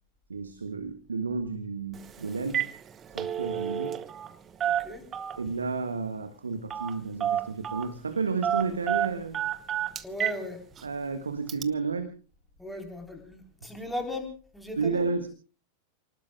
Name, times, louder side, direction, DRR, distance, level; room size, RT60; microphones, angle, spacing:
voice 1, 0.3-2.7 3.1-4.0 5.4-9.4 10.8-12.1 13.6-13.7 14.8-15.3, right 4 dB, 75° right, 11 dB, 1.5 m, -32 dB
Telephone, 1.9-2.1 2.4-2.7 3.0-4.3 4.6-5.5 6.7-6.9 7.2-7.9 8.4-10.4 10.8-10.9 11.5-11.6, right 10 dB, 25° right, 1.0 m, -29 dB
voice 2, 10.0-10.6 12.6-15.0, left 1 dB, ahead, 3 dB, 3.8 m, -37 dB
29.0 x 19.0 x 2.3 m, 0.37 s
figure-of-eight pair, 90°, 0 cm